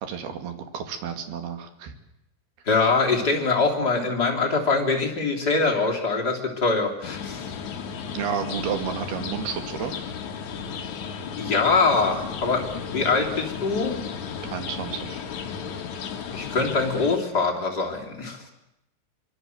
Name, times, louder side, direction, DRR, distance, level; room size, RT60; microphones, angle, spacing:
voice 1, 0.0-1.9 8.1-9.9 14.4-15.2, right 7 dB, 55° right, 8 dB, 3.7 m, -31 dB
voice 2, 2.6-7.5 11.4-14.0 16.3-18.4, left 4 dB, 25° left, 0 dB, 3.0 m, -23 dB
sound 1, 7.0-17.2, left 6 dB, 55° left, 2.3 m, -34 dB
24.5 x 23.5 x 8.0 m, 0.86 s
omnidirectional pair, 5.9 m